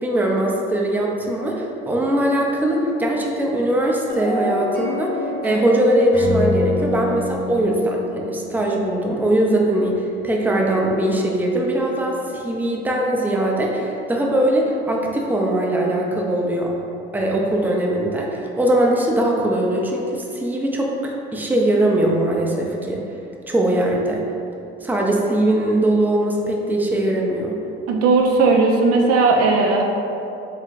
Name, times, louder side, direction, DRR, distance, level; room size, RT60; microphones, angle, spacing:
voice 1, 0.0-16.7 17.1-23.0 23.5-24.3 24.8-27.5, right 1 dB, 5° right, -2 dB, 0.6 m, -21 dB
sound 1, 4.1-9.3, left 1 dB, 30° left, 1.0 m, -24 dB
voice 2, 27.9-29.8, right 3 dB, 50° right, 1 dB, 0.5 m, -16 dB
4.7 x 3.2 x 2.4 m, 2.8 s
hypercardioid pair, 55°, 31 cm